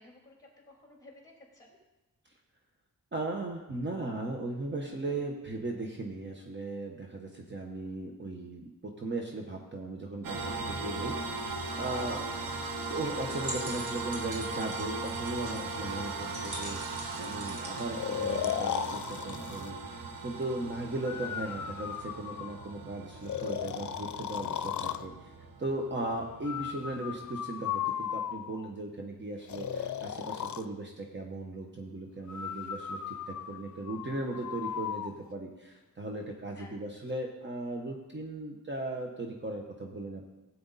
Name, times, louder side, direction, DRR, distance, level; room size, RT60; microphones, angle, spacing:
voice 1, 0.0-1.8 21.2-21.6 36.5-36.8, left 2 dB, 10° left, -2 dB, 3.1 m, -55 dB
voice 2, 3.1-12.3 12.9-25.3 25.6-40.3, right 2 dB, 35° right, 1 dB, 1.1 m, -37 dB
sound 1, 10.2-27.3, right 3 dB, 85° right, 1.1 m, -39 dB
sound 2, 13.2-18.8, right 1 dB, 60° right, 2.2 m, -44 dB
Breathing, 17.9-19.7 21.0-22.7 23.3-25.1 26.4-28.7 29.5-30.6 32.3-35.1, left 9 dB, 60° left, 0.6 m, -36 dB
16.5 x 8.6 x 4.1 m, 1.0 s
wide cardioid pair, 140°, 34 cm